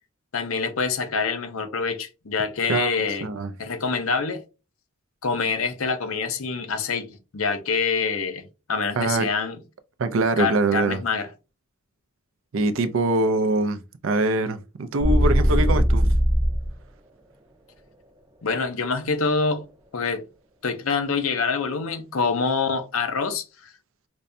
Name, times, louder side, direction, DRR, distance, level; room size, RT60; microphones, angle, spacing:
voice 1, 0.3-3.3 3.6-4.4 5.2-8.4 8.7-9.6 10.4-11.3 18.4-19.6 19.9-20.2 20.6-23.7, left 5 dB, 80° left, 0.7 m, -26 dB
voice 2, 2.7-3.5 9.0-9.3 10.0-11.0 12.5-16.1, right 2 dB, 65° right, 0.5 m, -23 dB
sound 1, 15.0-16.7, equal, 20° right, 0.7 m, -19 dB
5.1 x 2.2 x 2.6 m
head